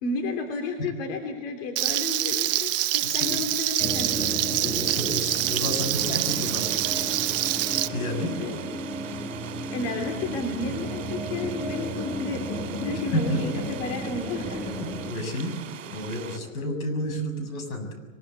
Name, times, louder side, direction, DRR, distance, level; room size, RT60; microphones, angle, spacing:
voice 1, 0.0-4.3 8.2-8.6 9.3-9.4 9.7-14.6, left 3 dB, 40° left, 3 dB, 3.0 m, -32 dB
Frying (food), 1.8-7.9, right 14 dB, 40° right, 0.8 m, -26 dB
voice 2, 3.0-3.4 4.6-6.9 7.9-8.3 12.9-13.6 14.7-15.6 15.9-18.0, equal, 70° left, 7 dB, 7.4 m, -31 dB
sound 1, 3.8-15.1, equal, 5° left, 1.9 m, -34 dB
sound 2, 5.9-16.4, right 8 dB, 60° right, 3.5 m, -41 dB
23.0 x 22.0 x 8.3 m, 1.2 s
hypercardioid pair, 165°, 44 cm